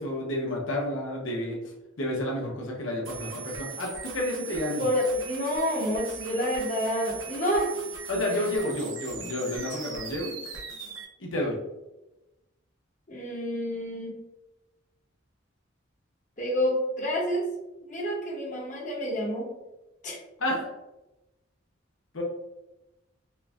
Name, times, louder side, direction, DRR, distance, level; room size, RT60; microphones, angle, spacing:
voice 1, 0.0-1.6 2.0-4.8 8.1-10.3 11.2-11.6 20.4-20.7 22.1-22.2, left 1 dB, 85° left, -2 dB, 0.9 m, -30 dB
sound 1, 3.0-11.0, right 6 dB, 80° right, 0.8 m, -39 dB
voice 2, 4.8-7.7 8.6-8.7 9.7-9.8 13.1-14.2 16.4-17.5 17.8-19.5 20.0-20.2, equal, 40° left, -3 dB, 0.9 m, -28 dB
5.3 x 2.1 x 2.4 m, 0.98 s
head